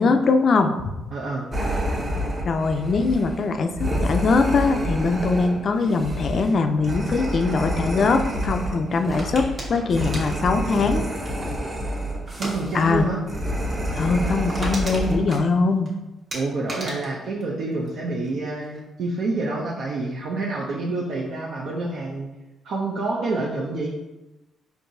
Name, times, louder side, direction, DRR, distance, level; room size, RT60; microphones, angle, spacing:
voice 1, 0.0-0.9 2.4-9.4 9.7-11.0 12.7-13.1 14.0-15.9, left 4 dB, 50° left, 7 dB, 0.4 m, -21 dB
voice 2, 1.1-1.5 12.4-13.2 16.3-22.3 22.6-24.0, right 3 dB, 65° right, -4 dB, 0.5 m, -28 dB
sound 1, 1.5-15.4, equal, 30° right, 0.8 m, -28 dB
sound 2, 9.1-11.7 12.3-12.6 12.8-13.1 13.4-13.5 13.9-14.0 14.2-15.9 16.3-18.3 18.6-19.1, right 1 dB, 45° right, 1.2 m, -35 dB
4.5 x 2.6 x 2.6 m, 1.0 s
cardioid pair, 90°, 0 cm